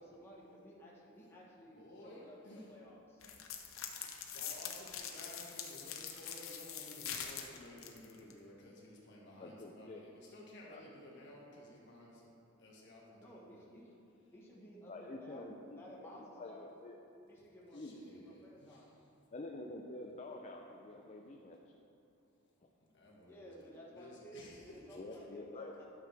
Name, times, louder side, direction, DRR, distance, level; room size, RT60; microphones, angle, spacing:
voice 1, 0.0-3.0 8.1-8.6 13.2-13.9 14.3-15.5 15.7-16.7 17.3-18.9 23.2-25.8, equal, 10° left, -5 dB, 1.3 m, -55 dB
voice 2, 1.6-2.6 4.2-12.3 12.6-13.6 17.7-18.9 21.2-21.3 22.9-25.0, left 1 dB, 60° left, -4 dB, 1.8 m, -55 dB
sound 1, 3.2-8.3, left 8 dB, 85° left, 0.8 m, -44 dB
voice 3, 9.4-10.0 10.7-10.8 14.9-15.8 16.1-17.0 17.7-18.0 19.3-21.6 24.9-25.7, left 2 dB, 35° left, 1 dB, 0.5 m, -47 dB
12.0 x 6.5 x 3.4 m, 2.7 s
head